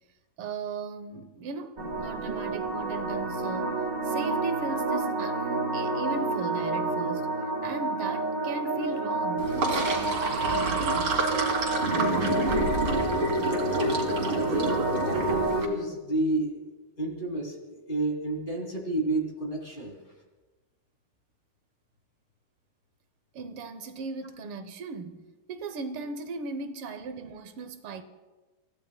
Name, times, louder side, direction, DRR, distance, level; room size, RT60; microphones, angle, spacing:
voice 1, 0.4-3.7 4.0-7.3 7.6-11.2 23.3-28.0, right 4 dB, 90° right, 1.8 m, -37 dB
sound 1, 1.8-15.6, right 2 dB, 40° right, 1.8 m, -29 dB
Sink (filling or washing), 9.4-15.7, right 2 dB, 70° right, 3.1 m, -28 dB
voice 2, 13.4-20.0, right 2 dB, 25° left, 2.8 m, -31 dB
29.0 x 15.5 x 2.2 m
omnidirectional pair, 2.4 m